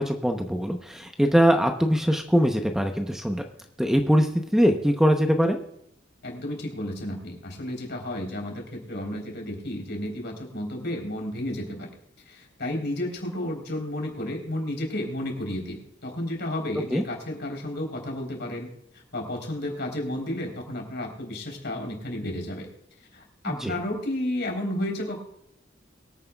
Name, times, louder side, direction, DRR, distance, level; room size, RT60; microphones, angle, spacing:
voice 1, 0.0-3.4 3.8-5.6 16.9-17.0 23.5-23.8, equal, 5° right, 4 dB, 0.8 m, -22 dB
voice 2, 6.2-11.9 12.3-18.7 19.1-22.7 23.1-25.2, left 1 dB, 65° left, 2 dB, 3.8 m, -32 dB
23.5 x 9.2 x 2.3 m, 0.74 s
head